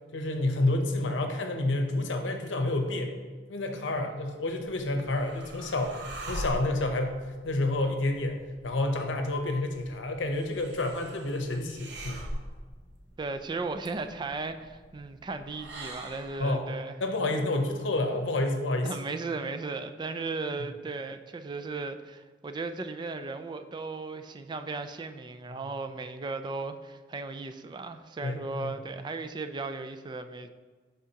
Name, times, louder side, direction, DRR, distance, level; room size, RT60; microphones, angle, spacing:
voice 1, 0.1-3.2 3.5-7.2 7.4-12.2 16.4-16.7 17.0-19.0 25.5-25.6 28.2-28.7, left 2 dB, 85° left, 5 dB, 0.8 m, -29 dB
sound 1, 4.5-16.6, right 1 dB, 65° right, 0.8 m, -43 dB
voice 2, 13.2-17.4 18.8-30.5, right 3 dB, 25° right, 9 dB, 0.3 m, -36 dB
11.0 x 3.7 x 2.8 m, 1.4 s
head